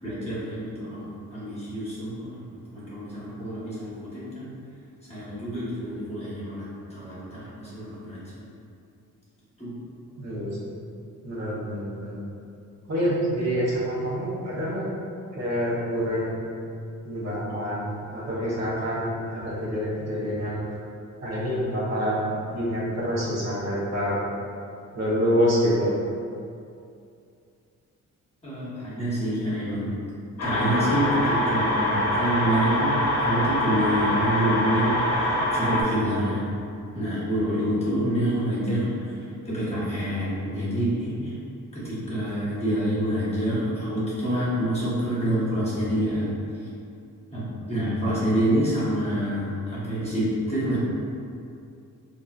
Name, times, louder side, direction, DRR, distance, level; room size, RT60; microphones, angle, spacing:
voice 1, 0.0-4.5 5.1-8.4 9.6-9.7 28.4-30.0 30.4-36.4 36.9-41.3 41.7-46.3 47.3-50.8, right 1 dB, 20° left, -10 dB, 1.1 m, -27 dB
voice 2, 10.2-10.7 11.2-12.1 12.9-14.8 15.3-16.4 17.0-20.6 21.2-24.2 24.9-25.9, equal, 55° right, -8 dB, 1.0 m, -27 dB
sound 1, 30.4-35.8, left 1 dB, 50° left, 0.8 m, -24 dB
3.7 x 2.7 x 2.4 m, 2.5 s
cardioid pair, 120°, 32 cm